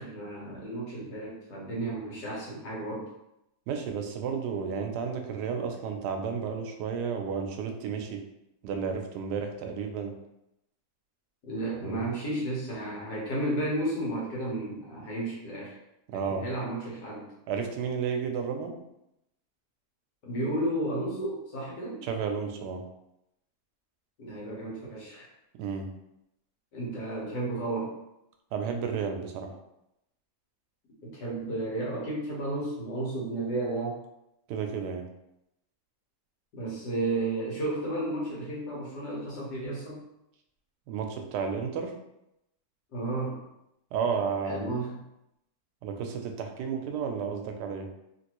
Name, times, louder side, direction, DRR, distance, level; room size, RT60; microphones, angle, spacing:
voice 1, 0.0-3.1 11.5-15.7 16.1-17.3 20.2-22.0 24.2-25.3 26.7-28.0 31.0-34.0 36.5-40.0 42.9-43.4 44.4-45.0, right 2 dB, 85° left, -4 dB, 1.7 m, -33 dB
voice 2, 3.7-8.2 8.6-10.2 11.7-12.1 16.1-16.5 17.5-18.7 22.0-22.8 25.6-25.9 28.5-29.5 34.5-35.0 40.9-41.9 43.9-44.7 45.8-47.9, right 6 dB, 90° right, 4 dB, 1.2 m, -32 dB
3.3 x 2.6 x 2.9 m, 0.85 s
omnidirectional pair, 1.7 m